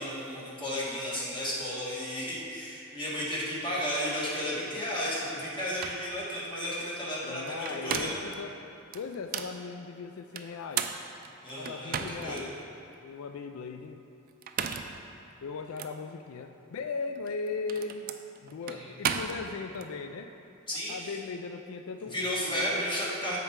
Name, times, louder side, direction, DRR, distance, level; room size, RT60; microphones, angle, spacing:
voice 1, 0.0-8.2 11.4-12.5 18.7-18.9 20.7-21.1 22.1-23.4, equal, 25° left, -7 dB, 1.7 m, -33 dB
sound 1, 5.4-5.5 5.8-6.1 7.5-8.4 8.9-9.6 10.4-12.4 12.9-13.0 14.3-15.0 15.8-15.9 17.2-19.9, right 7 dB, 45° right, 0.4 m, -35 dB
voice 2, 7.2-8.5 8.9-10.9 11.6-12.6 13.0-14.0 15.4-18.1 18.4-20.3 20.9-22.7, left 4 dB, 90° left, 6 dB, 0.4 m, -38 dB
13.5 x 4.5 x 3.6 m, 2.9 s
head